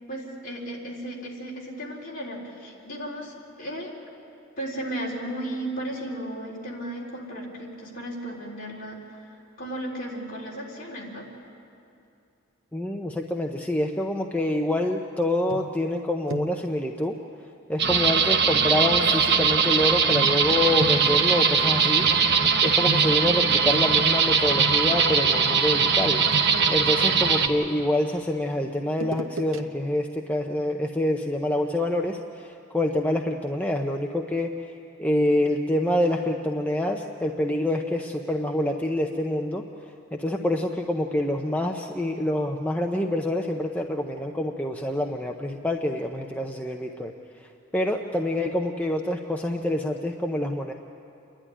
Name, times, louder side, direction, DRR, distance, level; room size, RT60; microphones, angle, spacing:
voice 1, 0.1-3.9 4.6-9.0 9.6-11.3, right 1 dB, 45° left, -3 dB, 3.9 m, -35 dB
voice 2, 12.7-17.2 17.7-22.1 22.6-34.5 35.0-39.6 40.1-47.1 47.7-50.7, left 1 dB, 5° left, 2 dB, 0.7 m, -26 dB
sound 1, 15.5-16.0 16.3-16.7 18.2-18.3 20.1-24.2 24.6-25.1 26.0-27.9 28.9-29.6 30.0-30.1, right 2 dB, 75° right, 1.0 m, -35 dB
sound 2, 17.8-27.5, right 6 dB, 55° right, 1.2 m, -21 dB
28.5 x 11.5 x 9.9 m, 2.6 s
head